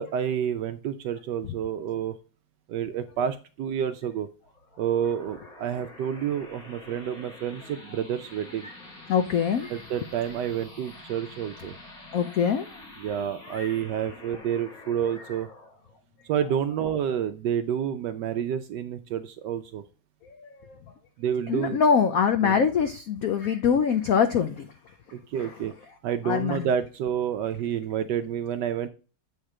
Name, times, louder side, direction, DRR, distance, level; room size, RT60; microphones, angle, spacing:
voice 1, 0.0-2.1 2.7-4.3 4.8-8.7 9.7-11.7 13.0-15.5 16.3-19.8 21.2-21.8 22.4-22.7 25.1-25.7 26.0-28.9, right 9 dB, 75° right, 10 dB, 1.0 m, -29 dB
sound 1, 4.4-17.5, left 2 dB, 60° left, 2.8 m, -48 dB
voice 2, 9.1-9.7 12.1-12.7 13.5-13.7 21.5-24.5 25.4-25.5 26.2-26.7, left 7 dB, 85° left, 9 dB, 0.7 m, -23 dB
8.1 x 3.6 x 4.8 m, 0.36 s
omnidirectional pair, 2.2 m